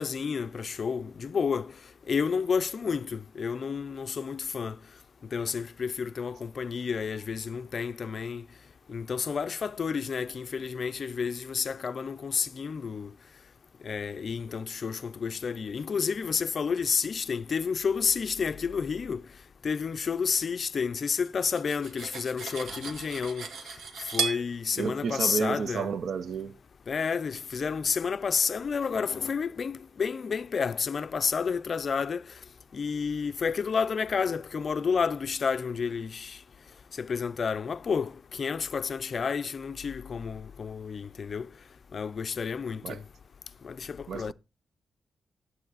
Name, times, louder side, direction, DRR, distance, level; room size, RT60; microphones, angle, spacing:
voice 1, 0.0-1.7 2.1-4.8 5.3-8.4 8.9-13.1 13.8-19.2 19.6-23.5 24.1-25.9 26.9-32.2 32.7-36.4 37.0-41.5 41.9-43.0 43.6-44.3, left 6 dB, 40° left, 0.4 m, -30 dB
Cutlery silverware, 21.2-24.4, right 5 dB, 90° right, 2.1 m, -35 dB
voice 2, 24.8-26.6 42.8-43.0 44.1-44.3, right 6 dB, 65° right, 0.6 m, -31 dB
9.3 x 9.2 x 4.0 m
wide cardioid pair, 180°, 0 cm